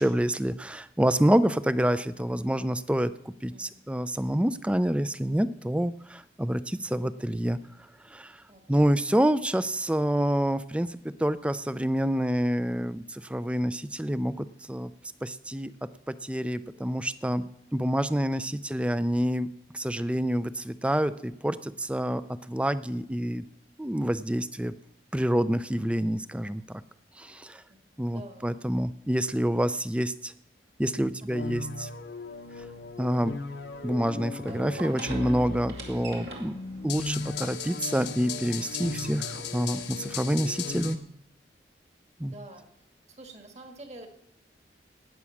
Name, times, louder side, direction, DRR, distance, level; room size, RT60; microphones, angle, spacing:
voice 1, 0.0-3.1 3.4-7.6 8.1-8.4 8.7-14.9 15.2-15.7 16.1-17.5 17.7-19.5 19.7-22.2 22.5-23.5 23.8-24.8 25.1-26.8 27.2-27.6 28.0-30.3 30.8-31.9 33.0-33.4 33.8-36.5 36.8-41.0 42.2-42.3, equal, 5° right, 14 dB, 0.4 m, -27 dB
voice 2, 8.5-8.9 27.7-28.5 31.3-31.4 42.3-42.6 43.1-44.1, right 2 dB, 40° right, 4 dB, 1.9 m, -47 dB
sound 1, 31.3-41.0, left 4 dB, 85° left, 1.1 m, -37 dB
sound 2, 32.3-40.8, right 2 dB, 70° right, 2.5 m, -46 dB
18.5 x 6.1 x 7.2 m, 0.81 s
head